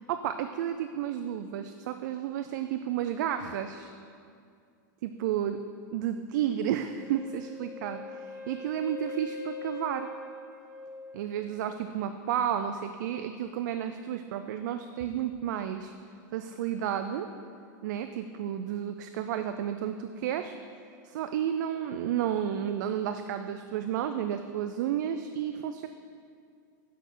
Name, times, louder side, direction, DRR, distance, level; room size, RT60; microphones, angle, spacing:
voice 1, 0.0-3.9 5.0-5.6 5.9-10.1 11.1-15.9 16.3-17.3 17.8-20.6 21.0-25.9, right 10 dB, 70° right, 8 dB, 0.4 m, -32 dB
Wind instrument woodwind instrument, 7.0-11.8, left 2 dB, 35° left, 2.3 m, -42 dB
6.5 x 6.4 x 6.7 m, 2.3 s
supercardioid pair, 155°, 10 cm